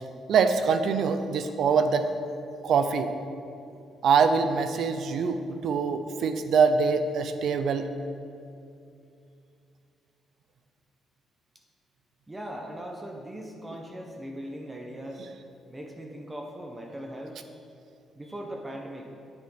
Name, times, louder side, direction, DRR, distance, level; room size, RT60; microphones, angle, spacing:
voice 1, 0.3-2.1 2.6-3.1 4.0-7.9, right 5 dB, 70° right, 9 dB, 0.8 m, -24 dB
voice 2, 12.3-15.3 15.7-17.7 18.1-19.1, equal, 15° right, 1 dB, 1.1 m, -39 dB
8.8 x 7.7 x 6.2 m, 2.5 s
cardioid pair, 90°, 0 cm